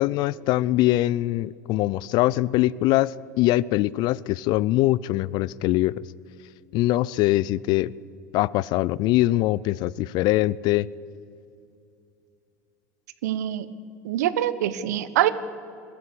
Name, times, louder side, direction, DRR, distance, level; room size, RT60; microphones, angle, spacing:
voice 1, 0.0-5.9 6.7-7.9 8.3-10.9, left 16 dB, 50° left, 22 dB, 0.5 m, -22 dB
voice 2, 13.2-13.7 14.0-15.3, right 12 dB, 70° right, 15 dB, 1.0 m, -24 dB
21.5 x 15.0 x 8.6 m, 2.5 s
hypercardioid pair, 80°, 9 cm